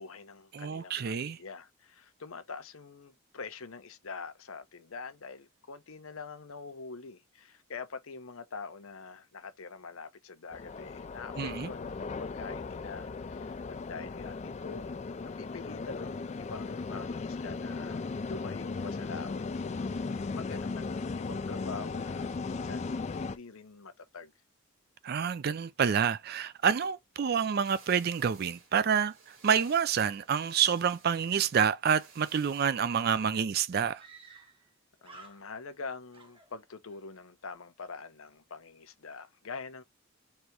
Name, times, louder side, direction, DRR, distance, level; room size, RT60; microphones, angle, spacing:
voice 1, 0.0-14.9 15.4-24.3 35.0-39.8, left 4 dB, 80° left, 0.8 m, -45 dB
voice 2, 0.6-1.4 11.4-11.7 25.0-29.1 29.4-34.0, right 7 dB, 45° right, 0.4 m, -28 dB
sound 1, 10.5-23.4, left 4 dB, 30° left, 0.3 m, -37 dB
sound 2, 27.6-32.8, right 5 dB, 70° right, 2.0 m, -57 dB
Screaming, 33.9-34.7 35.0-35.8 36.1-37.0, right 3 dB, 25° right, 1.0 m, -54 dB
4.2 x 3.4 x 3.0 m
head